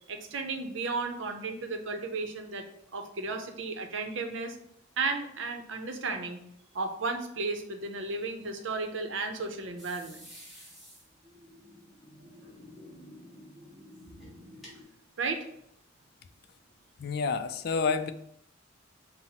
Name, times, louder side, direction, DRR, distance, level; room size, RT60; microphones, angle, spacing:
voice 1, 0.1-2.7 2.9-4.6 5.0-6.4 6.7-10.3 15.2-15.5, right 3 dB, 70° right, 5 dB, 0.6 m, -34 dB
sound 1, 9.8-14.8, equal, ahead, 1.2 m, -51 dB
voice 2, 17.0-18.1, left 5 dB, 55° left, 9 dB, 0.3 m, -29 dB
5.6 x 2.0 x 4.2 m, 0.73 s
head